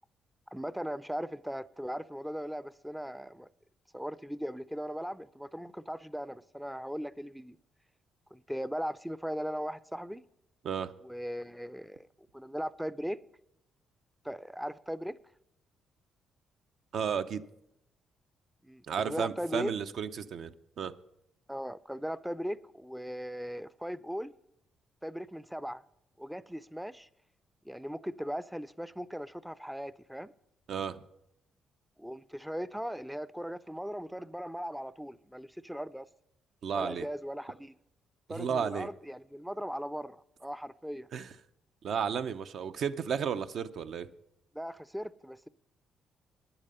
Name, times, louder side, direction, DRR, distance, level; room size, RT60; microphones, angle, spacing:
voice 1, 0.5-3.5 3.9-7.6 8.3-10.2 11.0-12.1 12.3-13.2 14.2-15.2 18.6-19.7 21.5-24.3 25.0-25.8 26.2-27.1 27.6-30.3 32.0-36.1 36.7-37.7 38.3-41.1 44.5-45.5, equal, 5° right, 0.4 m, -38 dB
voice 2, 16.9-17.4 18.9-20.9 30.7-31.0 36.6-37.1 38.3-38.9 41.1-41.3 41.8-44.1, right 7 dB, 65° right, 0.6 m, -33 dB
10.0 x 8.8 x 5.5 m
cardioid pair, 90°, 0 cm